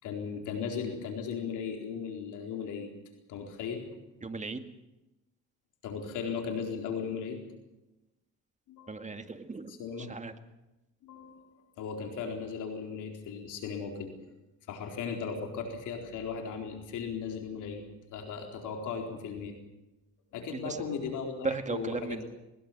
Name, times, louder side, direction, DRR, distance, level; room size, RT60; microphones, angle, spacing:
voice 1, 0.0-2.9 3.3-3.8 5.8-7.4 8.7-9.0 9.7-10.1 11.0-11.5 11.8-14.1 14.7-17.8 18.1-19.5 20.3-22.2, left 6 dB, 85° left, 3 dB, 4.3 m, -37 dB
voice 2, 4.2-4.6 8.9-9.7 10.1-10.3 20.6-20.8 21.4-22.2, right 4 dB, 25° right, 7 dB, 2.0 m, -35 dB
21.0 x 20.0 x 7.4 m, 0.99 s
cardioid pair, 90°, 30 cm